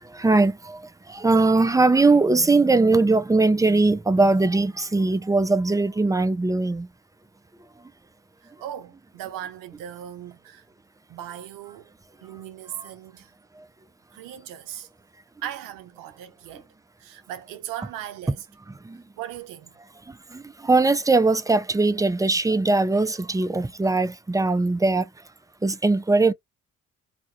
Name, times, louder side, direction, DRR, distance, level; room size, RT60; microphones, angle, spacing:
voice 1, 0.2-0.5 1.2-6.9 20.7-25.0 25.6-26.3, right 3 dB, 10° right, 0.4 m, -20 dB
voice 2, 8.4-10.7 11.1-11.9 12.2-13.3 14.1-14.9 15.4-16.7 17.0-18.5 19.2-19.8, right 11 dB, 80° right, 0.6 m, -38 dB
2.3 x 2.1 x 2.6 m
hypercardioid pair, 50°, 33 cm